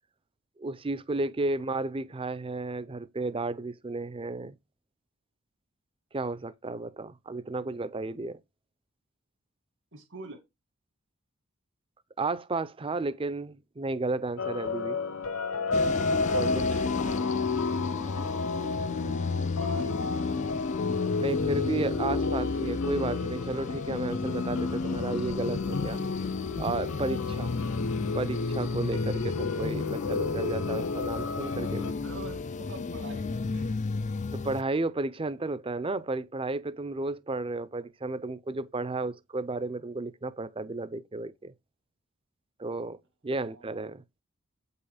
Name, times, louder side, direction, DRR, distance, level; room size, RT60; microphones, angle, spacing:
voice 1, 0.6-4.6 6.1-8.4 12.2-15.0 16.3-16.8 21.2-26.0 26.6-27.5 28.1-31.9 34.3-41.5 42.6-43.0 43.2-44.0, right 3 dB, 25° right, 0.6 m, -33 dB
voice 2, 9.9-10.4 17.2-17.3 19.6-20.0 27.2-27.8 31.7-33.9 43.4-43.9, right 2 dB, 60° right, 2.2 m, -46 dB
sound 1, 14.4-31.9, left 4 dB, 75° left, 1.0 m, -33 dB
sound 2, 15.7-34.6, left 4 dB, 35° left, 0.4 m, -32 dB
8.7 x 5.6 x 5.0 m
head